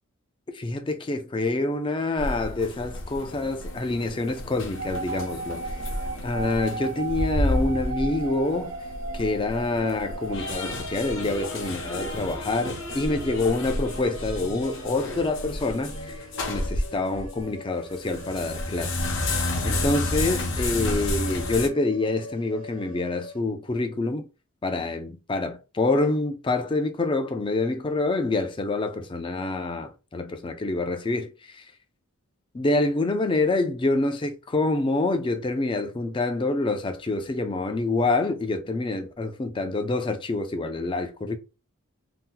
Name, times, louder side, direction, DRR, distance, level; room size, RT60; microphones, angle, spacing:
voice 1, 0.5-6.0 6.2-8.7 9.1-19.0 19.3-24.3 24.6-31.7 32.5-41.4, left 2 dB, 20° left, 0.3 m, -27 dB
sound 1, 2.2-17.4 17.8-21.7, left 1 dB, 55° left, 0.7 m, -31 dB
sound 2, 4.7-23.4, right 2 dB, 65° right, 0.5 m, -39 dB
2.7 x 2.1 x 3.7 m
head